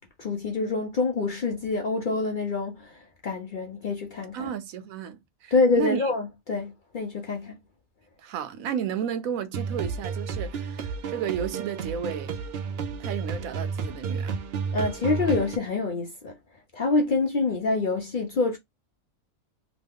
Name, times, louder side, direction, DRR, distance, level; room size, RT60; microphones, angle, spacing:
voice 1, 0.2-4.5 5.5-7.5 14.7-16.4 16.7-18.6, left 3 dB, 60° left, 0.5 m, -26 dB
voice 2, 4.3-6.0 8.2-12.3 13.0-14.3, right 8 dB, 90° right, 1.1 m, -32 dB
sound 1, 9.5-15.6, right 5 dB, 65° right, 0.7 m, -32 dB
3.0 x 2.2 x 3.4 m
omnidirectional pair, 1.4 m